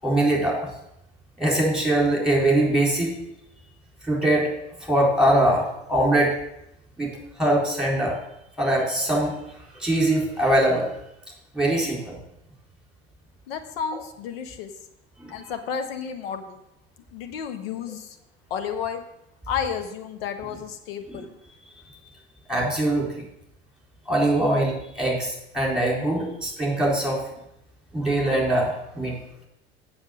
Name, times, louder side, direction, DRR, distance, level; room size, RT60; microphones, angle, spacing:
voice 1, 0.0-0.7 1.4-3.2 4.0-4.5 4.8-6.4 7.0-8.2 8.6-9.4 9.8-10.9 11.5-12.2 15.2-15.5 21.1-21.2 22.5-23.2 24.1-27.3 27.9-29.2, right 1 dB, ahead, -3 dB, 3.9 m, -22 dB
voice 2, 13.5-14.7 15.3-16.6 17.1-18.2 18.5-19.0 19.5-21.3 26.3-26.4, left 7 dB, 65° left, 7 dB, 1.3 m, -32 dB
7.6 x 6.8 x 6.5 m, 0.82 s
figure-of-eight pair, 75°, 33 cm